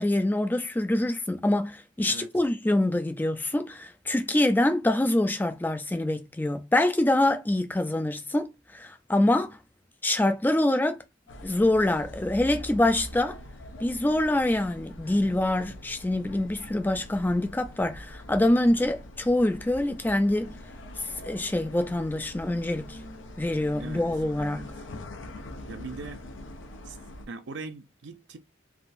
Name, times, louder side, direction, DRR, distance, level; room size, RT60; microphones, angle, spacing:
voice 1, 0.0-9.6 10.0-11.0 11.4-13.4 13.8-20.6 21.2-23.0 23.4-24.7, left 1 dB, 10° left, 0.3 m, -25 dB
sound 1, 11.3-27.3, left 1 dB, 85° left, 0.6 m, -43 dB
voice 2, 25.7-26.2 26.8-27.0 27.3-28.4, right 4 dB, 65° right, 0.5 m, -40 dB
3.5 x 2.4 x 2.5 m
head